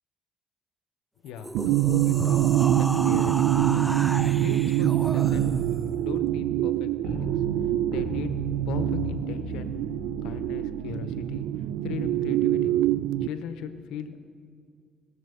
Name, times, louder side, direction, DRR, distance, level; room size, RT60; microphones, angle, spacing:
voice 1, 1.2-2.4 2.7-4.0 4.4-5.5 6.0-7.4 7.9-8.3 8.7-9.7 10.2-11.5 11.8-12.7 13.2-14.2, left 8 dB, 85° left, 10 dB, 0.7 m, -38 dB
sound 1, 1.3-5.9, right 1 dB, 5° right, 0.7 m, -35 dB
sound 2, 1.5-13.3, right 12 dB, 85° right, 0.3 m, -25 dB
sound 3, 5.3-10.8, right 1 dB, 65° right, 2.2 m, -36 dB
17.0 x 7.2 x 6.9 m, 2.3 s
cardioid pair, 90°, 0 cm